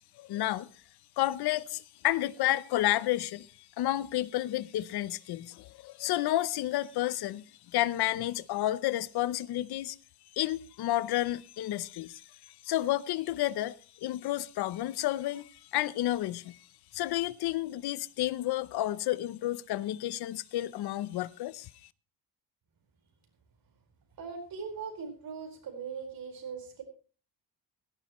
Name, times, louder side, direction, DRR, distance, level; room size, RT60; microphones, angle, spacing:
voice 1, 0.2-0.7 1.2-3.5 3.8-7.4 7.7-10.0 10.3-12.2 12.7-13.7 14.0-16.6 16.9-21.7, left 14 dB, 75° left, 0.7 m, -31 dB
voice 2, 24.2-26.8, right 5 dB, 60° right, 4.8 m, -40 dB
16.5 x 14.5 x 3.1 m
cardioid pair, 155°, 38 cm